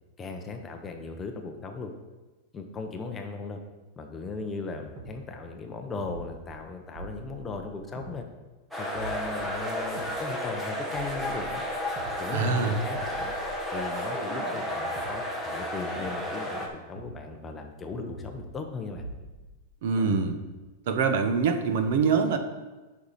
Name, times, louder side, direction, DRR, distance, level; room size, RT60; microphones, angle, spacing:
voice 1, 0.2-1.9 2.5-3.6 4.0-8.3 8.8-11.6 12.2-13.3 13.7-19.0, left 3 dB, 15° left, 4 dB, 0.8 m, -37 dB
sound 1, 5.0-5.1 6.0-6.6 7.0-8.2 9.0-10.2 10.9-12.2 13.0-15.1 16.0-16.1 17.0-17.2 18.0-18.7 19.0-19.6 20.0-20.6, right 2 dB, 30° right, 1.5 m, -43 dB
sound 2, 8.7-16.7, equal, 5° right, 1.2 m, -32 dB
voice 2, 12.3-12.8 19.8-20.4 20.9-22.4, right 5 dB, 60° right, 7 dB, 0.9 m, -24 dB
9.8 x 5.7 x 4.2 m, 1.2 s
supercardioid pair, 160°, 0 cm